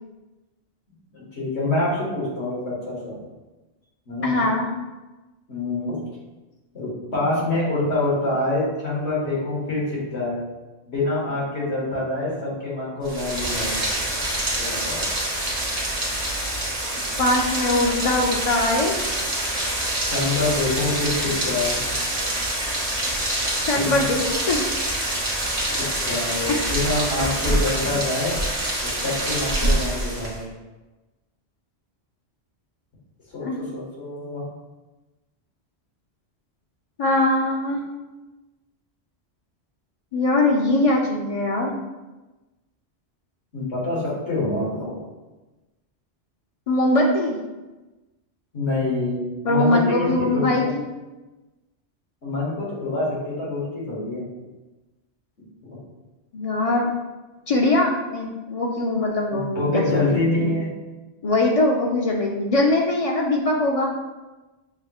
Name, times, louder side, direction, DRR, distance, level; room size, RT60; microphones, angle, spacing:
voice 1, 1.1-3.2 4.1-4.5 5.5-6.0 6.7-10.4 10.9-13.8 14.5-15.0 20.1-21.8 23.8-24.1 25.7-28.3 28.8-30.4 33.3-34.4 43.5-45.0 48.5-50.7 52.2-54.2 59.3-60.7, left 2 dB, 80° left, -6 dB, 1.8 m, -26 dB
voice 2, 4.2-4.7 17.2-19.0 23.6-24.2 24.5-24.6 26.5-26.6 29.6-29.7 33.4-33.6 37.0-37.8 40.1-41.7 46.7-47.4 49.4-50.8 56.3-56.9 57.5-60.5 61.2-63.9, left 2 dB, 55° left, -1 dB, 0.4 m, -21 dB
Rain, 13.0-30.4, right 1 dB, 35° right, 1.0 m, -26 dB
6.5 x 2.9 x 2.3 m, 1.1 s
omnidirectional pair, 1.1 m